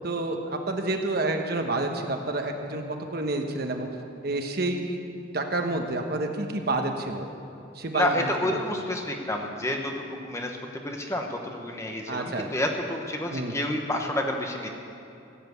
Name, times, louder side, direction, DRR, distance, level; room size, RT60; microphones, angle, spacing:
voice 1, 0.0-3.9 4.2-5.0 5.3-7.3 7.7-8.6 12.1-12.5 13.3-13.5, right 2 dB, 55° right, 4 dB, 1.1 m, -29 dB
voice 2, 7.9-14.7, left 1 dB, 15° left, 2 dB, 1.1 m, -29 dB
15.5 x 7.7 x 8.0 m, 2.7 s
head